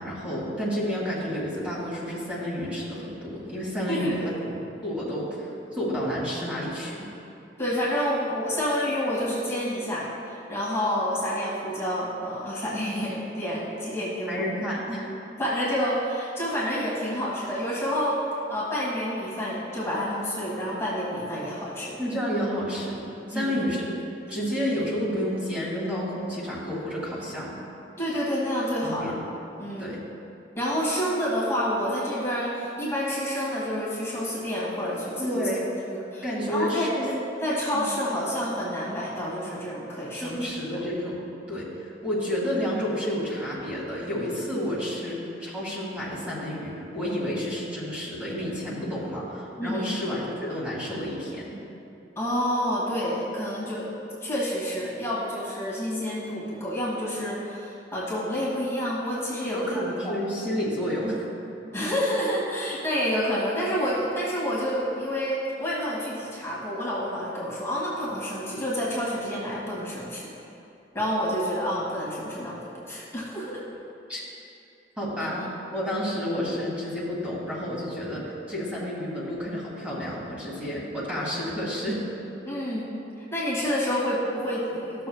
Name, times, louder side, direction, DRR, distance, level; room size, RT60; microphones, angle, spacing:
voice 1, 0.0-4.2 4.5-4.6 4.8-7.0 14.3-15.1 22.0-23.9 24.3-27.6 28.8-29.2 29.8-30.0 35.2-35.6 36.2-37.0 37.7-37.9 40.1-41.2 41.5-41.6 42.0-51.5 59.4-61.2 74.1-74.2 75.0-82.0, equal, 10° right, -7 dB, 2.0 m, -30 dB
voice 2, 3.9-4.3 7.6-14.6 15.4-18.2 18.5-22.0 23.3-23.7 28.0-29.1 29.6-29.9 30.6-35.5 35.9-37.1 37.4-40.5 40.7-40.8 49.6-49.9 52.2-53.9 54.2-59.6 60.0-60.2 61.7-70.3 70.9-72.6 72.9-73.6 82.4-83.0 83.3-85.1, equal, 15° left, -8 dB, 1.8 m, -28 dB
15.0 x 6.8 x 2.3 m, 2.7 s
head